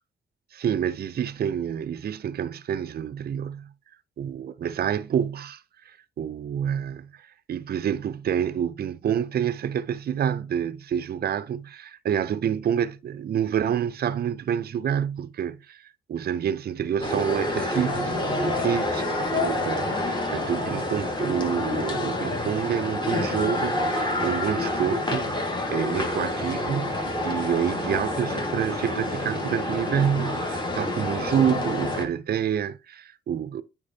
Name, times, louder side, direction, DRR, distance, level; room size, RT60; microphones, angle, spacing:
voice 1, 0.5-3.7 4.2-33.6, right 8 dB, 50° right, 0.5 m, -28 dB
sound 1, 17.0-32.1, left 2 dB, 20° left, 1.8 m, -28 dB
8.6 x 4.6 x 2.7 m
cardioid pair, 75°, 21 cm